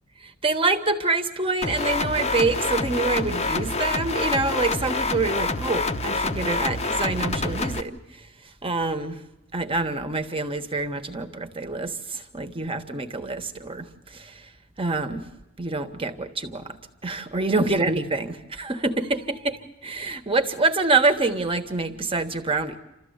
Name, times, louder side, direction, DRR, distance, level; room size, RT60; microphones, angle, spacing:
voice 1, 0.2-8.0 8.6-9.2 9.5-14.5 14.8-15.2 15.6-22.8, right 3 dB, 25° right, 7 dB, 1.3 m, -26 dB
sound 1, 1.6-7.8, left 3 dB, 30° left, 0.9 m, -27 dB
29.0 x 13.5 x 8.1 m, 0.93 s
head